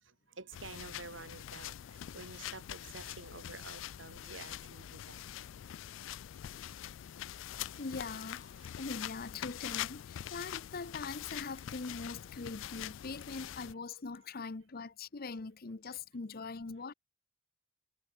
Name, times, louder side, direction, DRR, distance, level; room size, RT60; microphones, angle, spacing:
voice 1, 0.0-5.5 6.0-6.1 7.7-7.9 8.6-8.7, right 3 dB, 70° right, 2.6 m, -50 dB
sound 1, 0.5-13.7, left 11 dB, 70° left, 0.3 m, -44 dB
voice 2, 7.8-16.9, left 4 dB, 50° left, 0.8 m, -42 dB
sound 2, 8.5-9.6 10.2-10.6 10.9-11.1 11.3-12.7 13.2-13.3 14.1-14.5, left 8 dB, 30° left, 3.0 m, -67 dB
head